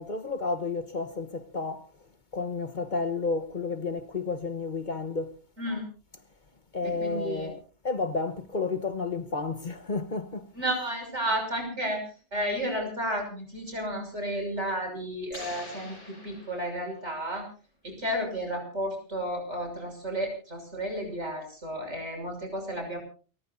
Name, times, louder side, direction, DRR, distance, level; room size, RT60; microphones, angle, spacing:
voice 1, 0.0-1.9 2.3-5.3 6.7-10.5, left 4 dB, 45° left, 1.2 m, -31 dB
voice 2, 6.8-7.5 10.5-12.0 12.3-17.4 17.8-23.0, equal, 75° right, 6.4 m, -32 dB
sound 1, 15.3-17.2, left 1 dB, 80° left, 5.8 m, -45 dB
29.5 x 14.5 x 2.7 m
omnidirectional pair, 1.2 m